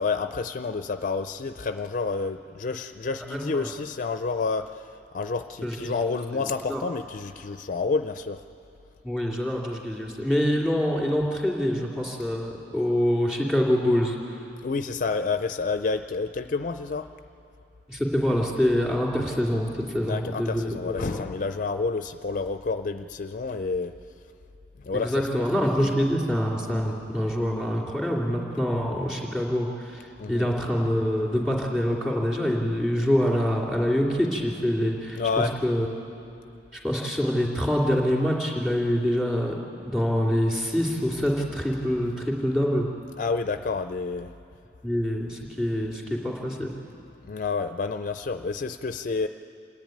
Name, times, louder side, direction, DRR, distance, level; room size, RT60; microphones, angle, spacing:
voice 1, 0.0-8.4 14.6-17.1 20.0-23.9 24.8-25.5 30.2-30.5 35.2-35.5 43.2-44.3 47.2-49.3, left 4 dB, 50° left, 9 dB, 0.5 m, -29 dB
voice 2, 3.3-3.7 5.6-5.9 6.3-6.8 9.0-14.4 17.9-21.2 24.9-35.9 36.7-39.5 39.8-42.9 44.8-46.7, equal, 5° right, -2 dB, 2.9 m, -25 dB
27.5 x 10.5 x 9.3 m, 2.7 s
head